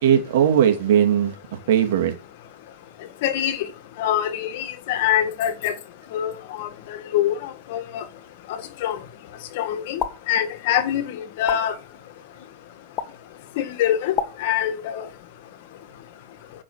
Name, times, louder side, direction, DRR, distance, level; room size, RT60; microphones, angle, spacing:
voice 1, 0.0-2.1, right 9 dB, 65° right, 2.5 m, -19 dB
voice 2, 3.2-3.6 4.0-5.7 6.1-6.7 7.1-8.0 8.8-9.0 9.6-10.0 10.3-11.7 13.6-15.0, left 10 dB, 60° left, 1.6 m, -24 dB
sound 1, 10.0-10.1 11.5-11.6 13.0-13.1 14.1-14.3, left 8 dB, 35° left, 1.5 m, -25 dB
9.1 x 6.0 x 6.5 m
supercardioid pair, 135°, 0 cm